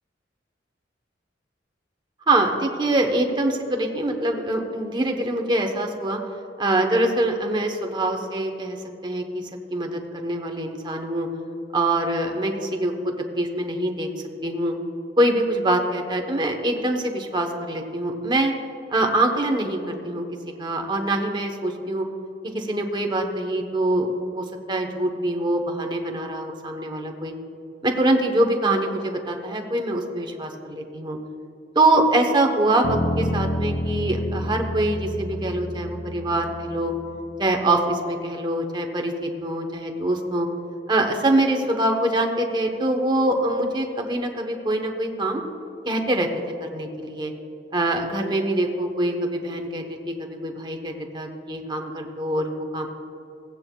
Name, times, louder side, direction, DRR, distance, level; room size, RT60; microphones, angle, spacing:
voice 1, 2.3-6.2 6.6-8.8 9.0-9.4 9.7-11.3 11.7-14.1 14.4-14.8 15.2-18.5 18.9-20.2 20.6-22.0 22.5-27.3 27.8-31.2 31.7-36.9 37.4-40.5 40.9-45.4 45.9-46.3 46.7-47.3 47.7-52.9, right 1 dB, 25° right, 3 dB, 0.9 m, -24 dB
sound 1, 32.8-37.2, equal, 80° left, 2.2 m, -29 dB
16.0 x 9.4 x 2.2 m, 2.8 s
head